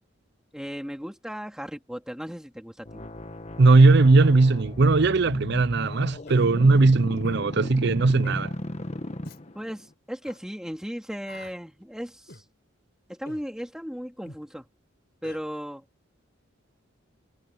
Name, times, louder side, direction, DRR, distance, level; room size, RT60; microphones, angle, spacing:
voice 1, 0.5-3.0 9.5-12.4 13.1-14.7 15.2-15.8, equal, 5° right, 2.7 m, -36 dB
sound 1, 2.8-9.8, left 1 dB, 35° left, 1.3 m, -36 dB
voice 2, 3.6-8.5, right 3 dB, 55° right, 0.6 m, -18 dB
Human voice, 6.3-6.5 7.2-7.5 8.2-8.4 9.2-9.4 10.2-10.4 11.3-11.6 12.3-12.5 13.3-13.5 14.3-14.4 15.2-15.4, left 2 dB, 50° left, 5.8 m, -46 dB
head